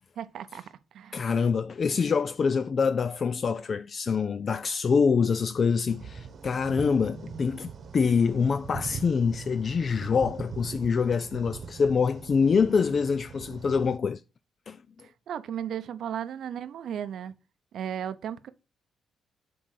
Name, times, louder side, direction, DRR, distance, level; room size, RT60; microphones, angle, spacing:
voice 1, 0.2-1.3 15.0-17.3 17.7-18.5, right 9 dB, 70° right, 0.7 m, -35 dB
voice 2, 1.1-14.2 14.7-14.8, left 5 dB, 45° left, 0.4 m, -25 dB
sound 1, 5.9-14.0, right 5 dB, 50° right, 1.1 m, -42 dB
7.6 x 3.9 x 6.5 m
cardioid pair, 90°, 0 cm